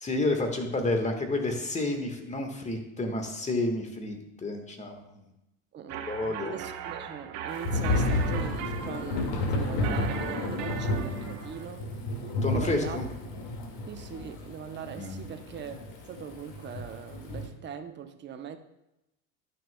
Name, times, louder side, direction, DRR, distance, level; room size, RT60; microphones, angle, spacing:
voice 1, 0.0-5.0 6.1-6.6 12.4-13.1 15.0-15.2, left 2 dB, 20° left, 4 dB, 1.5 m, -30 dB
voice 2, 5.7-11.9 12.5-13.0 13.9-15.7 16.1-18.6, right 7 dB, 30° right, 8 dB, 0.8 m, -41 dB
sound 1, 5.9-11.6, right 8 dB, 60° right, 1.1 m, -39 dB
Thunder / Rain, 7.7-17.5, left 2 dB, 65° left, 2.0 m, -31 dB
11.5 x 6.6 x 2.2 m, 0.89 s
hypercardioid pair, 90°, 37 cm